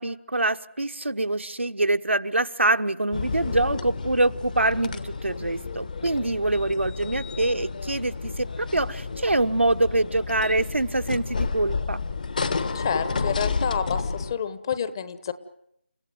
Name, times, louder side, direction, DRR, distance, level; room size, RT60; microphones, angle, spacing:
voice 1, 0.0-12.0, right 2 dB, 85° right, 8 dB, 1.2 m, -25 dB
sound 1, 3.1-14.3, left 4 dB, 40° left, 1.4 m, -31 dB
voice 2, 12.7-15.3, left 7 dB, 20° left, 14 dB, 1.0 m, -29 dB
29.5 x 16.0 x 9.6 m, 0.77 s
figure-of-eight pair, 165°, 6 cm